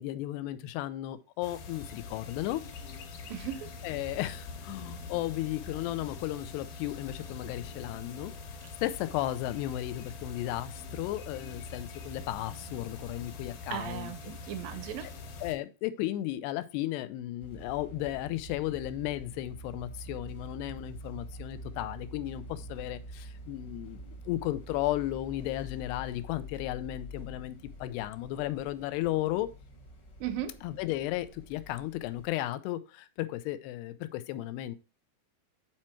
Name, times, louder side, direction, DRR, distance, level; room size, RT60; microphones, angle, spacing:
voice 1, 0.0-2.6 3.8-8.3 8.8-14.1 15.4-29.5 30.6-34.8, left 15 dB, 85° left, 2.7 m, -34 dB
sound 1, 1.4-15.6, left 3 dB, 70° left, 3.0 m, -44 dB
voice 2, 3.3-3.7 13.7-15.1 30.2-30.6, right 11 dB, 80° right, 2.1 m, -37 dB
sound 2, 17.4-32.3, equal, 50° left, 1.3 m, -46 dB
8.7 x 4.5 x 4.3 m
omnidirectional pair, 4.7 m